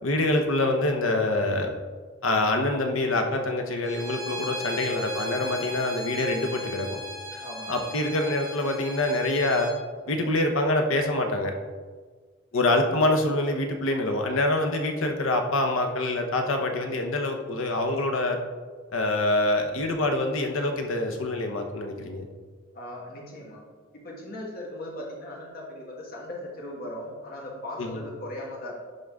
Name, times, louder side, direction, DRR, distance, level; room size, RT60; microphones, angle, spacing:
voice 1, 0.0-1.7 2.2-7.0 7.3-9.7 10.1-11.5 12.5-18.4 18.9-22.2 27.8-28.0, left 2 dB, 80° left, 4 dB, 0.9 m, -25 dB
Bowed string instrument, 3.8-9.8, left 1 dB, 15° right, 1.0 m, -37 dB
voice 2, 7.4-7.8 12.5-12.6 22.7-23.6 23.9-28.7, left 1 dB, 45° left, -2 dB, 1.5 m, -38 dB
11.0 x 3.8 x 3.6 m, 1.5 s
head